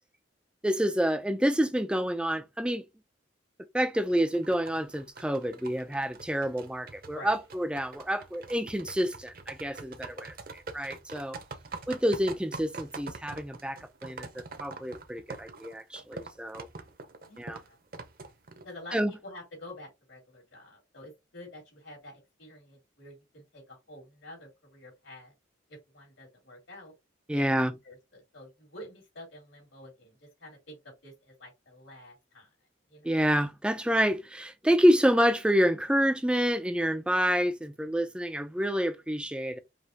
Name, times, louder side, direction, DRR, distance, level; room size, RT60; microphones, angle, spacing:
voice 1, 0.6-2.8 3.7-11.4 11.9-16.7 17.4-17.6 18.9-19.1 27.3-27.7 33.0-39.6, equal, 5° right, 0.4 m, -28 dB
sound 1, 3.9-18.9, right 3 dB, 45° right, 0.7 m, -45 dB
voice 2, 7.1-7.5 11.7-11.8 17.3-17.8 18.6-25.3 25.7-26.9 27.3-32.5 32.9-33.1, left 1 dB, 80° left, 2.8 m, -49 dB
5.1 x 2.9 x 2.8 m
head